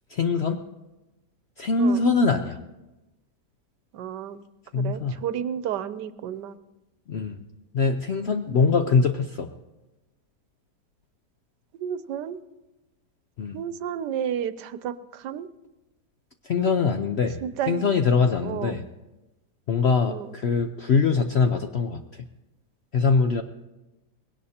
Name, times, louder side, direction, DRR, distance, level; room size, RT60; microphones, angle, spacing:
voice 1, 0.1-0.6 1.6-2.6 4.7-5.2 7.1-7.4 7.7-9.5 13.4-13.6 16.4-17.4 17.7-18.8 19.7-22.0 22.9-23.4, left 4 dB, 70° left, 6 dB, 0.6 m, -23 dB
voice 2, 3.9-4.4 4.7-6.6 8.5-8.7 11.8-12.4 13.5-15.5 17.4-17.8 18.4-18.8 20.1-20.4, right 9 dB, 85° right, 14 dB, 1.3 m, -32 dB
21.0 x 17.5 x 2.8 m, 1.0 s
omnidirectional pair, 1.8 m